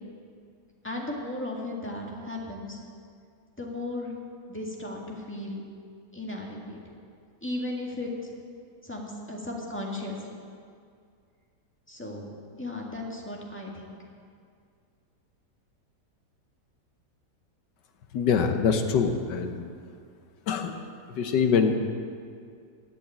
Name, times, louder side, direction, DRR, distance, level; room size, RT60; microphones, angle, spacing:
voice 1, 0.8-2.8 3.6-4.2 4.5-5.6 6.1-6.8 7.4-8.1 8.8-10.2 11.9-12.3 12.6-13.9, left 2 dB, 5° left, -2 dB, 1.7 m, -35 dB
voice 2, 18.1-19.6 20.5-20.8 21.1-21.8, left 6 dB, 75° left, 6 dB, 1.6 m, -24 dB
10.5 x 8.5 x 8.5 m, 2.3 s
omnidirectional pair, 1.9 m